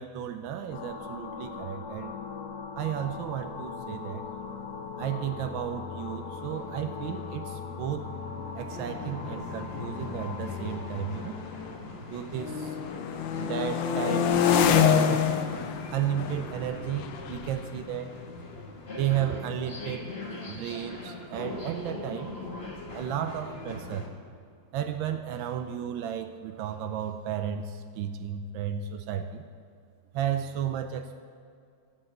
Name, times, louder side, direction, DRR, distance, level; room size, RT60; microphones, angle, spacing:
voice 1, 0.0-2.1 2.8-4.2 5.0-8.1 8.5-11.4 12.1-12.8 13.4-18.1 18.9-20.1 20.5-22.3 22.9-24.1 24.7-29.4 30.1-31.2, right 10 dB, 85° right, 7 dB, 1.4 m, -33 dB
sound 1, 0.7-12.7 13.1-17.7, left 5 dB, 60° left, 1.4 m, -41 dB
sound 2, 6.6-6.7 6.9-7.3 8.0-12.0 12.3-19.0, left 8 dB, 80° left, 1.4 m, -29 dB
sound 3, 8.6-24.1, left 2 dB, 35° left, 1.6 m, -41 dB
12.0 x 7.9 x 6.4 m, 2.3 s
omnidirectional pair, 2.1 m